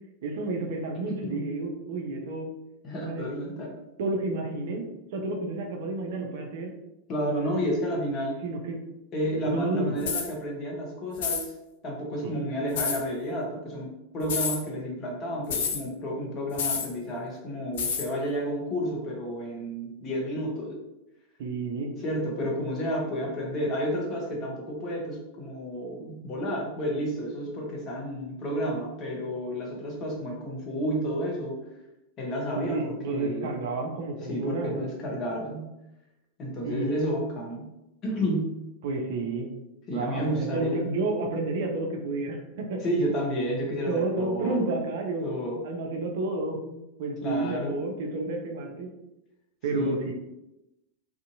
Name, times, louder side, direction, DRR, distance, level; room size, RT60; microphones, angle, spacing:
voice 1, 0.2-2.5 2.9-3.2 4.0-4.8 5.1-6.7 8.4-8.8 9.5-10.0 12.2-12.4 21.4-21.9 32.6-34.8 36.6-36.9 38.8-39.5 39.9-42.8 43.9-45.3 45.6-48.9 49.6-50.1, right 2 dB, 55° right, 2 dB, 0.4 m, -30 dB
voice 2, 1.1-1.6 2.8-3.7 7.1-8.4 9.1-11.5 11.8-20.8 22.0-31.6 32.2-32.8 33.1-33.5 34.3-35.7 36.4-37.7 38.0-38.6 39.9-40.9 42.8-44.6 45.2-45.6 47.2-47.8 49.7-50.0, equal, 35° left, -2 dB, 0.8 m, -31 dB
sound 1, 10.0-10.3 11.2-11.5 12.8-13.0 14.2-14.6 15.5-15.8 16.6-16.9 17.8-18.1, left 6 dB, 55° left, 0.4 m, -28 dB
2.6 x 2.4 x 2.6 m, 0.92 s
figure-of-eight pair, 90°, 0 cm